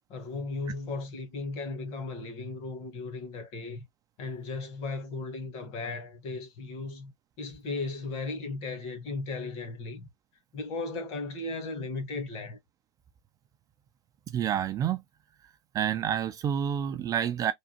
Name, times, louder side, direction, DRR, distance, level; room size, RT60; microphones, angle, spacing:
voice 1, 0.1-3.8 4.2-7.1 7.4-10.1 10.5-12.6, left 3 dB, 40° left, 1.3 m, -36 dB
voice 2, 14.3-15.0 15.7-17.5, right 9 dB, 25° right, 0.3 m, -28 dB
3.4 x 2.4 x 2.9 m
hypercardioid pair, 110°, 15 cm